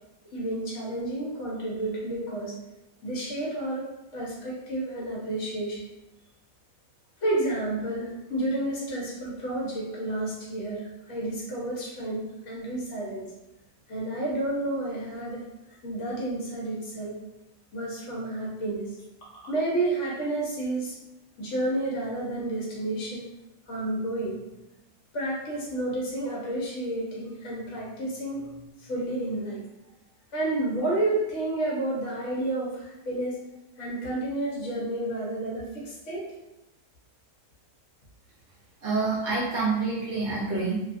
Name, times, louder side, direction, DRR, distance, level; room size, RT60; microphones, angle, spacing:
voice 1, 0.3-2.6 3.0-5.8 7.2-13.3 13.9-15.5 15.8-17.2 17.7-21.0 21.4-23.3 23.7-24.4 25.1-29.6 30.3-33.4 33.8-36.4, right 1 dB, 65° left, -4 dB, 0.9 m, -31 dB
voice 2, 38.8-40.8, right 3 dB, 60° right, -6 dB, 0.9 m, -27 dB
2.6 x 2.4 x 2.4 m, 0.97 s
omnidirectional pair, 1.5 m